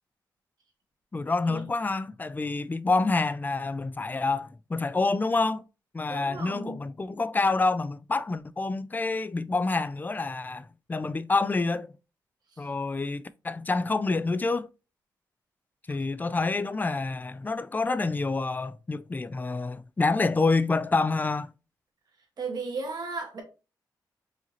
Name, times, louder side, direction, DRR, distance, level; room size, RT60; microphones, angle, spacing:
voice 1, 1.1-5.6 5.9-11.9 12.6-14.7 15.9-21.5, left 3 dB, 25° left, 0.3 m, -27 dB
voice 2, 6.1-6.8 22.4-23.4, right 4 dB, 65° right, 1.5 m, -35 dB
4.7 x 2.8 x 3.0 m
cardioid pair, 60°, 8 cm